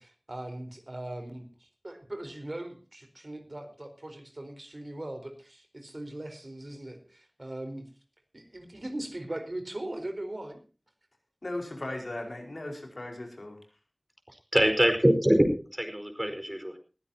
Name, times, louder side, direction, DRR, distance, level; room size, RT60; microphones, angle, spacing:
voice 1, 0.0-7.9 8.3-10.6, right 1 dB, 55° right, 6 dB, 4.4 m, -40 dB
voice 2, 11.4-13.6, left 1 dB, 75° left, 2 dB, 5.0 m, -37 dB
voice 3, 14.5-15.5 15.8-16.8, equal, 15° right, 7 dB, 4.8 m, -23 dB
21.0 x 15.5 x 2.9 m, 0.35 s
wide cardioid pair, 45°, 0 cm